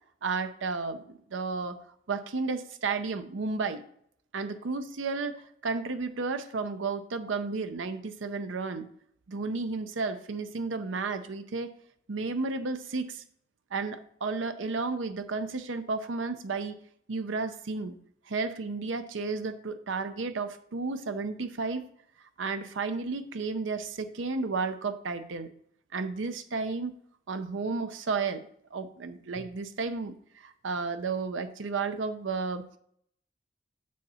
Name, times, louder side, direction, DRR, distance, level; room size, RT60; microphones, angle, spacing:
voice 1, 0.2-1.8 2.1-3.8 4.3-8.9 9.3-11.7 12.1-13.2 13.7-16.8 17.1-18.0 18.3-21.9 22.4-25.5 25.9-26.9 27.3-30.1 30.4-32.6, right 4 dB, 80° right, 9 dB, 0.6 m, -32 dB
6.7 x 6.4 x 4.2 m, 0.67 s
head